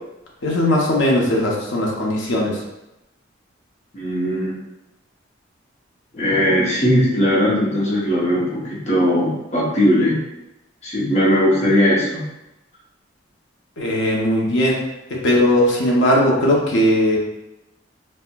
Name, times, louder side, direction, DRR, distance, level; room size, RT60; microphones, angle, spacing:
voice 1, 0.4-2.6 13.8-14.8 15.1-17.2, left 1 dB, 75° left, -2 dB, 0.7 m, -18 dB
voice 2, 3.9-4.6 6.1-10.2 10.8-12.2, equal, 35° left, -5 dB, 0.8 m, -18 dB
4.2 x 2.1 x 2.2 m, 0.92 s
head